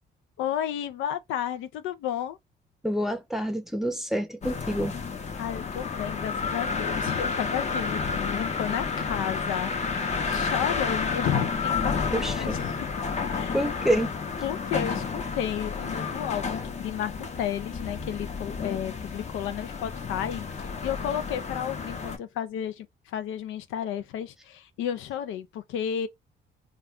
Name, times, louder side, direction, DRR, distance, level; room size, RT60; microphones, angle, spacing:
voice 1, 0.4-2.4 5.4-12.9 13.2-13.6 14.4-26.1, left 10 dB, 90° left, 0.4 m, -32 dB
voice 2, 2.8-4.9 12.1-12.6 13.5-14.1, equal, ahead, 0.6 m, -27 dB
sound 1, 4.4-22.2, left 5 dB, 35° left, 0.7 m, -31 dB
2.3 x 2.2 x 3.5 m
cardioid pair, 90°, 20 cm